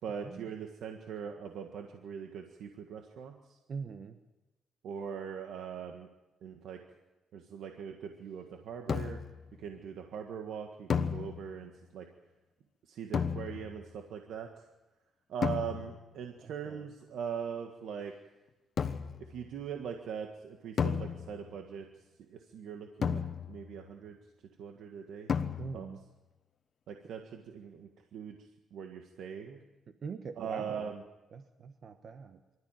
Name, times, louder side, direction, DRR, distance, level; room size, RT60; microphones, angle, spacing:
voice 1, 0.0-3.6 4.8-6.1 6.4-6.8 7.3-9.2 9.6-12.1 12.8-14.6 15.3-18.1 19.2-23.2 23.5-24.2 24.6-25.3 25.7-25.9 26.9-29.6 30.4-31.0, right 7 dB, 75° right, 4 dB, 1.7 m, -41 dB
voice 2, 3.7-4.2 16.4-16.8 25.6-26.0 30.0-30.9 31.3-32.4, right 5 dB, 50° right, 7 dB, 1.2 m, -42 dB
sound 1, 8.9-9.4 10.9-11.8 13.1-13.9 15.4-16.1 18.8-19.3 20.8-21.6 23.0-23.8 25.3-26.0, left 6 dB, 45° left, 1.1 m, -33 dB
24.5 x 13.5 x 9.2 m, 1.1 s
cardioid pair, 120°, 0 cm